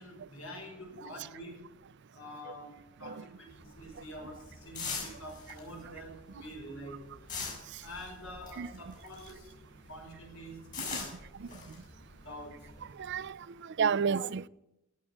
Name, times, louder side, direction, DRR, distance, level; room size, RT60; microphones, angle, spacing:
voice 1, 0.0-1.7 2.1-7.1 7.8-9.5 9.9-11.2 12.2-12.7, equal, 70° left, 6.0 m, -46 dB
sound 1, 3.5-9.6 9.9-13.3, left 5 dB, 40° left, 6.5 m, -42 dB
voice 2, 13.0-14.5, right 6 dB, 55° right, 0.4 m, -32 dB
17.5 x 7.6 x 8.5 m
head